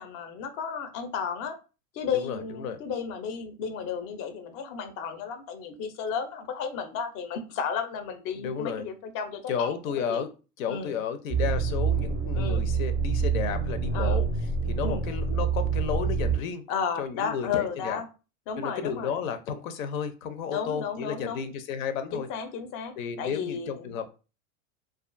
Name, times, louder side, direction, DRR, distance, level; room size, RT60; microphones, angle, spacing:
voice 1, 0.0-1.6 1.9-10.2 10.7-10.9 12.3-12.6 13.9-14.2 14.8-15.0 16.7-18.1 18.5-19.2 20.5-21.4 22.1-24.0, left 6 dB, 35° left, 8 dB, 0.5 m, -33 dB
voice 2, 2.1-2.8 8.4-8.9 9.5-10.3 10.6-14.3 14.7-16.6 17.0-18.0 18.6-22.3 23.0-24.1, left 7 dB, 85° left, 9 dB, 0.6 m, -32 dB
sound 1, 11.3-16.4, right 5 dB, 25° right, 0.4 m, -26 dB
2.4 x 2.3 x 2.5 m, 0.32 s
supercardioid pair, 125°, 39 cm